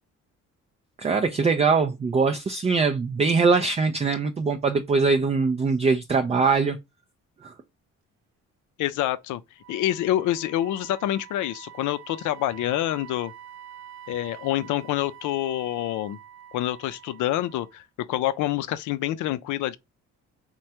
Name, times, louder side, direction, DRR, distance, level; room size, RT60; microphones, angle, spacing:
voice 1, 1.0-6.8 7.4-7.5, right 4 dB, 20° right, 0.4 m, -22 dB
voice 2, 8.8-9.4 9.7-13.3 14.1-16.2 16.5-19.8, left 13 dB, 85° left, 0.5 m, -27 dB
Wind instrument woodwind instrument, 9.6-17.8, right 10 dB, 65° right, 0.8 m, -46 dB
3.2 x 2.3 x 2.7 m
cardioid pair, 90°, 30 cm